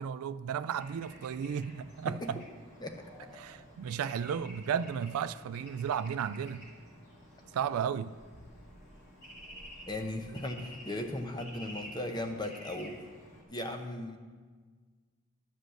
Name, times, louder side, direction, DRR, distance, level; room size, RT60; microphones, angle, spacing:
voice 1, 0.0-2.4 3.4-6.7 7.5-8.1, right 7 dB, 80° right, 0.3 m, -34 dB
Bird / Traffic noise roadway noise, 0.7-13.4, equal, 45° left, 2.9 m, -51 dB
voice 2, 2.8-3.3 9.9-13.0 13.5-14.2, left 1 dB, 20° left, 0.7 m, -37 dB
11.5 x 5.2 x 7.7 m
head